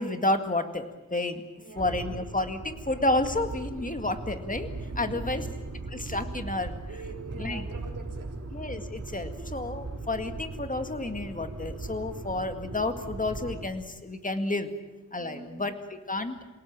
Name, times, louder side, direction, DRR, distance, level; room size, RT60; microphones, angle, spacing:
voice 1, 0.0-1.4 1.8-4.7 5.0-5.4 5.9-6.8 7.4-7.6 8.5-14.7 15.1-15.7 16.1-16.4, left 2 dB, 25° left, 7 dB, 2.1 m, -30 dB
voice 2, 1.6-2.0 4.8-5.4 6.9-8.4 15.2-15.6, right 3 dB, 85° right, 2 dB, 5.1 m, -44 dB
sound 1, 1.7-13.7, right 3 dB, 50° right, 3.5 m, -38 dB
27.5 x 18.0 x 9.1 m, 1.1 s
wide cardioid pair, 100°, 31 cm